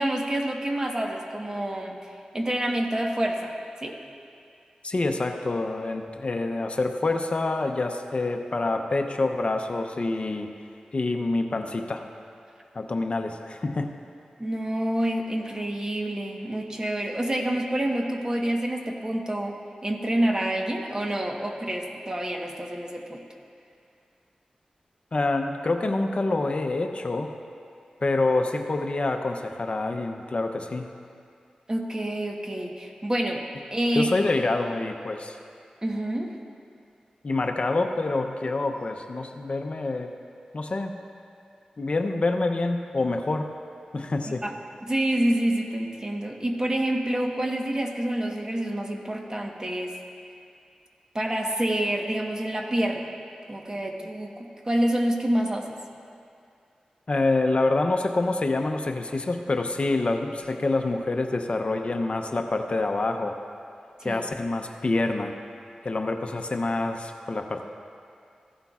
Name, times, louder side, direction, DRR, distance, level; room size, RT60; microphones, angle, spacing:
voice 1, 0.0-2.0 2.3-3.5 3.8-4.0 14.4-19.6 19.8-23.2 31.7-33.4 33.7-34.1 35.8-36.3 44.3-44.5 44.8-49.9 51.1-53.1 53.5-55.8 64.0-64.3, right 1 dB, 25° right, 1 dB, 1.2 m, -27 dB
voice 2, 4.8-10.5 10.9-12.0 12.7-13.9 25.1-27.3 28.0-30.9 33.9-35.4 37.2-40.1 40.5-40.9 41.8-43.5 43.9-44.4 57.1-63.3 64.0-65.3 65.8-67.7, left 2 dB, 50° left, 5 dB, 0.7 m, -26 dB
15.5 x 11.0 x 2.4 m, 2.4 s
cardioid pair, 55°, 3 cm